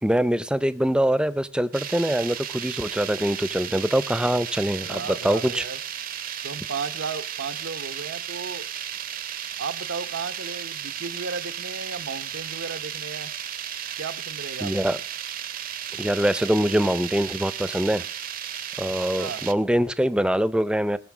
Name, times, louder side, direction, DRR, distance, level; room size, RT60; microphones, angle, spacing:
voice 1, 0.0-5.6 14.6-15.0 16.0-18.0 18.8-21.0, equal, 5° right, 0.5 m, -23 dB
sound 1, 1.7-19.5, right 9 dB, 45° right, 0.7 m, -34 dB
voice 2, 4.8-5.8 6.4-8.7 9.6-13.3 14.0-14.7 19.2-19.5, right 5 dB, 85° right, 0.9 m, -34 dB
20.0 x 6.7 x 6.0 m
head